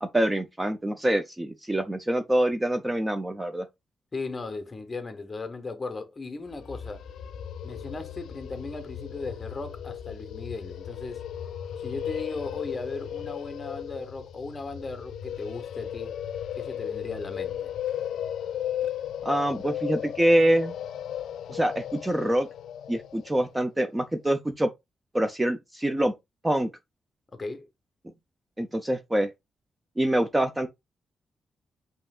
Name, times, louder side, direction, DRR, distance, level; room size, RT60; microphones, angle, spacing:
voice 1, 0.0-3.7 19.2-20.8 21.5-22.5 22.9-24.7 25.1-26.1 26.4-26.7 28.6-29.3 30.0-30.7, right 1 dB, 10° right, 0.4 m, -25 dB
voice 2, 4.1-7.0 7.6-11.2 11.8-16.1 16.6-17.7 27.3-27.7, left 3 dB, 25° left, 0.8 m, -37 dB
sound 1, 6.5-23.5, left 10 dB, 85° left, 0.3 m, -36 dB
5.3 x 2.7 x 2.3 m
wide cardioid pair, 150°, 0 cm